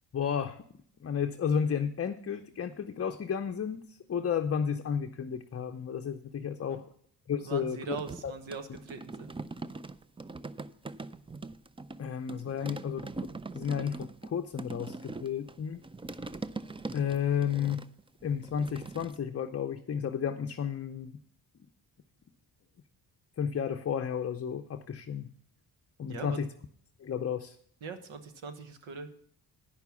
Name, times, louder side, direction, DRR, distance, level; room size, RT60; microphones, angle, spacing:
voice 1, 0.1-0.6 1.0-6.8 7.3-8.0 8.2-8.3 12.0-13.1 13.5-15.8 16.9-17.8 18.2-21.2 23.4-25.2 26.0-26.5 27.0-27.6, left 7 dB, 30° left, 6 dB, 0.6 m, -32 dB
voice 2, 7.4-9.3 26.1-26.4 27.8-29.1, right 4 dB, 80° right, 9 dB, 1.3 m, -41 dB
sound 1, 7.9-12.0 12.3-19.2, right 3 dB, 15° right, 0.4 m, -42 dB
9.9 x 6.0 x 7.0 m, 0.63 s
cardioid pair, 60°, 46 cm